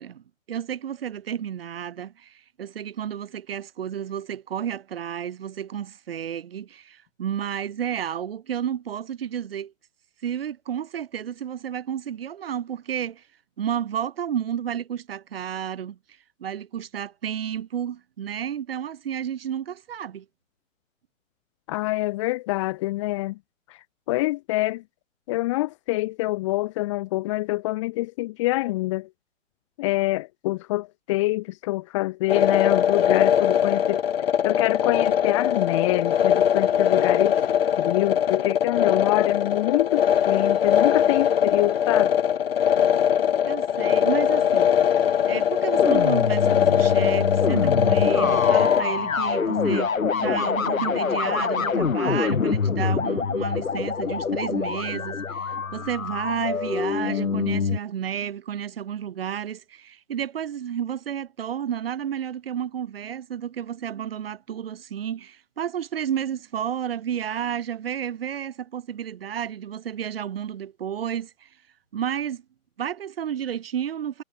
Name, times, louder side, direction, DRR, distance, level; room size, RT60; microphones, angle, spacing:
voice 1, 0.0-9.7 10.2-13.2 13.6-16.0 16.4-20.3 43.4-44.7 45.3-71.5 71.9-72.4 72.8-74.2, right 9 dB, 45° right, 7.2 m, -31 dB
voice 2, 21.7-23.4 24.1-24.8 25.3-29.1 29.8-34.0 34.4-37.4 37.8-42.1, left 19 dB, 25° left, 2.3 m, -26 dB
sound 1, 32.3-48.8, left 9 dB, 45° left, 4.3 m, -21 dB
sound 2, 45.7-57.8, left 5 dB, 90° left, 3.1 m, -25 dB
hypercardioid pair, 165°, 40 cm